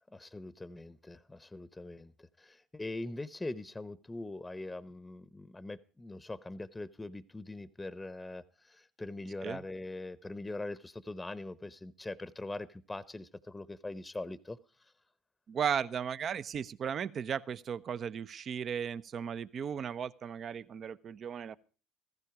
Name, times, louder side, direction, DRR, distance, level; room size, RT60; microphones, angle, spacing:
voice 1, 0.1-14.9, left 2 dB, 15° left, 18 dB, 0.9 m, -42 dB
voice 2, 15.5-21.6, right 7 dB, 45° right, 16 dB, 0.8 m, -36 dB
15.0 x 15.0 x 4.8 m, 0.36 s
hypercardioid pair, 60°, 0 cm